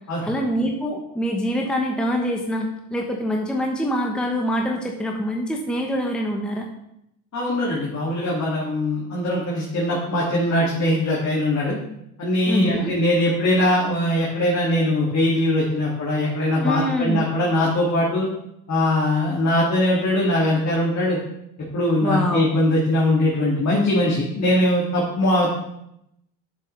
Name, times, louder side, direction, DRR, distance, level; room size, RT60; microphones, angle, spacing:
voice 1, 0.2-6.6 12.5-12.9 16.6-17.2 22.0-22.5, equal, ahead, 1 dB, 1.0 m, -24 dB
voice 2, 7.3-11.8 12.2-18.3 18.7-21.2 21.7-25.5, left 1 dB, 40° left, -6 dB, 2.3 m, -21 dB
7.5 x 6.9 x 3.3 m, 0.80 s
supercardioid pair, 75°, 43 cm